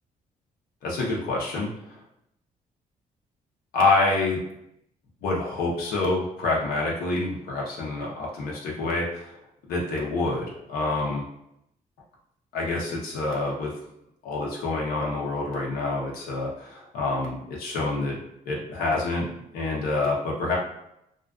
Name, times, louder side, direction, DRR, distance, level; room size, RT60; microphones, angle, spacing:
voice 1, 0.8-2.0 3.7-4.4 5.2-9.4 9.7-11.2 12.5-13.7 14.2-20.6, left 2 dB, 85° left, -3 dB, 0.6 m, -27 dB
2.4 x 2.2 x 2.3 m, 0.80 s
cardioid pair, 110°, 15 cm